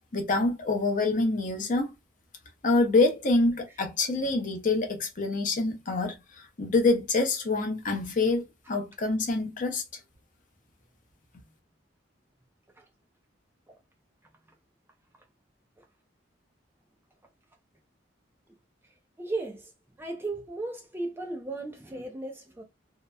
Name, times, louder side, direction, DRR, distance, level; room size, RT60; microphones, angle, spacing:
voice 1, 0.1-1.9 2.6-9.8, left 3 dB, 40° left, 0.6 m, -26 dB
voice 2, 18.8-19.7 20.0-22.6, right 2 dB, 10° right, 0.4 m, -36 dB
2.8 x 2.0 x 2.2 m
head